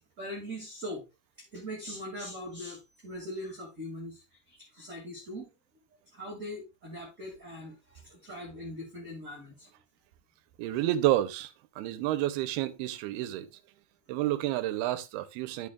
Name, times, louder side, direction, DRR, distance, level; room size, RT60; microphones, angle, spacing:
voice 1, 0.2-1.0 1.5-5.5 6.1-9.7, equal, 25° right, 1.7 m, -41 dB
voice 2, 10.6-13.5 14.1-15.7, right 14 dB, 85° right, 2.6 m, -30 dB
12.0 x 6.4 x 2.4 m
omnidirectional pair, 4.6 m